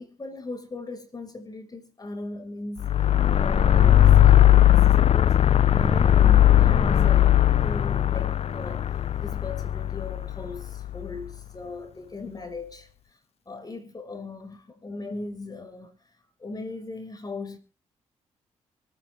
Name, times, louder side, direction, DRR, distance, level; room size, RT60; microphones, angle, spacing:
voice 1, 0.0-3.0 3.3-5.4 5.7-12.9 13.4-15.9 16.4-17.6, left 3 dB, 30° left, 5.0 m, -38 dB
sound 1, 2.8-11.1, left 11 dB, 50° left, 0.8 m, -18 dB
24.5 x 9.4 x 3.5 m
supercardioid pair, 65°, 13 cm